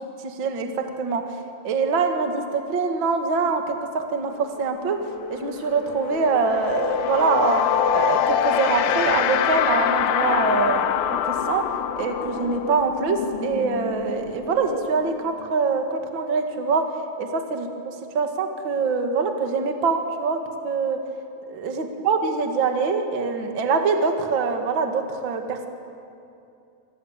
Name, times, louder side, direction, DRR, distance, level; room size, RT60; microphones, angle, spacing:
voice 1, 0.2-1.2 1.6-5.0 5.3-7.6 7.9-11.0 11.2-11.6 12.0-16.8 17.2-17.7 18.1-20.4 20.6-21.0 21.5-25.7, right 4 dB, 60° right, 4 dB, 1.2 m, -24 dB
sound 1, 4.4-4.6 4.9-15.5, left 9 dB, 80° left, 3.2 m, -25 dB
27.0 x 25.5 x 7.4 m, 2.6 s
omnidirectional pair, 5.2 m